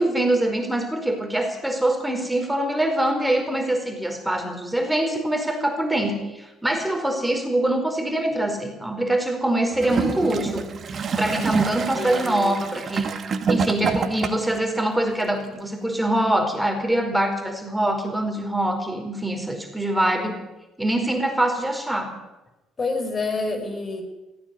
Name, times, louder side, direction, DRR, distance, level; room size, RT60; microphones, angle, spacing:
voice 1, 0.0-10.7 11.2-13.1 13.5-20.4 20.8-22.1, right 1 dB, 5° right, 4 dB, 4.8 m, -24 dB
Gurgling / Toilet flush, 9.7-14.6 15.4-15.5, right 5 dB, 45° right, 2.1 m, -27 dB
voice 2, 11.9-12.6 22.8-24.0, left 3 dB, 35° left, 6 dB, 5.3 m, -28 dB
17.5 x 16.0 x 9.8 m, 1.0 s
hypercardioid pair, 60°, 0 cm